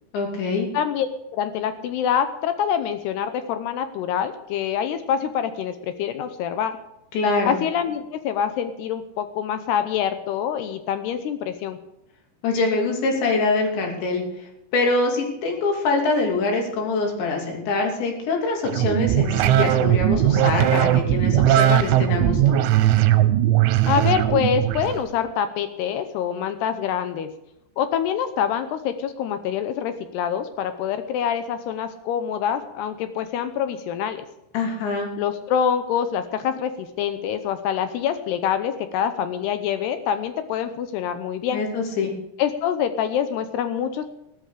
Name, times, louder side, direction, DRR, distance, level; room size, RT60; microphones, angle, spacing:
voice 1, 0.1-0.7 7.1-7.6 12.4-14.2 14.7-22.6 34.5-35.1 41.5-42.1, left 3 dB, 65° left, 1 dB, 4.9 m, -24 dB
voice 2, 0.7-6.8 7.5-11.8 23.9-27.3 27.8-34.2 35.2-41.6 42.4-44.0, left 8 dB, 80° left, 9 dB, 2.4 m, -25 dB
sound 1, 18.6-25.0, right 12 dB, 85° right, 3.2 m, -19 dB
16.5 x 12.5 x 5.0 m, 0.82 s
omnidirectional pair, 5.8 m